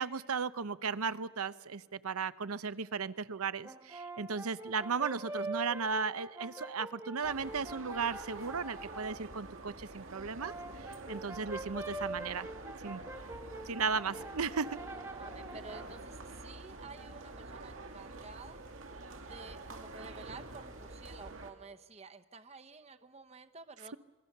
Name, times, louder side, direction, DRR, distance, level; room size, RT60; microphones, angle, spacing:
voice 1, 0.0-10.5 10.9-12.5 12.8-13.0 13.7-14.8, right 5 dB, 90° right, 15 dB, 0.8 m, -35 dB
Brass instrument, 3.6-9.2 10.1-16.0, right 2 dB, 10° right, 1.3 m, -44 dB
sound 1, 7.2-21.5, right 2 dB, 70° right, 2.4 m, -47 dB
voice 2, 15.1-18.6 19.2-24.0, right 3 dB, 30° right, 10 dB, 0.8 m, -51 dB
27.0 x 22.0 x 6.7 m, 1.3 s
head